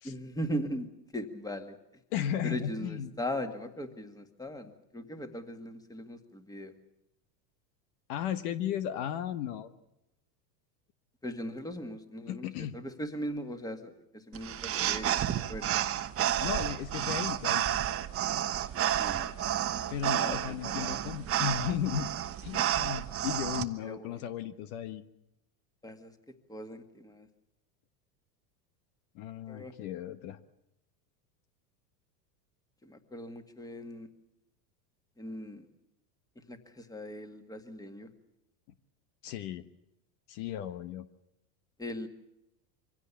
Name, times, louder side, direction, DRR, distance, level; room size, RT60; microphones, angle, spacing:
voice 1, 0.0-0.9 1.1-1.8 2.4-6.7 11.2-12.5 12.7-15.1 15.5-15.7 19.0-19.3 20.1-21.0 23.8-24.2 25.8-26.1 26.5-27.3 29.5-29.7 32.8-34.1 35.2-35.7 36.4-38.1 41.8-42.1, equal, 5° left, 7 dB, 2.0 m, -39 dB
voice 2, 2.1-3.1 8.1-9.7 12.3-12.8 16.4-17.6 19.9-22.1 22.4-25.0 29.1-30.4 39.2-39.7 40.3-41.1, left 9 dB, 60° left, 12 dB, 1.3 m, -35 dB
sound 1, 14.3-23.6, right 11 dB, 25° right, 1.1 m, -31 dB
24.0 x 16.5 x 8.4 m, 0.88 s
supercardioid pair, 120°, 50 cm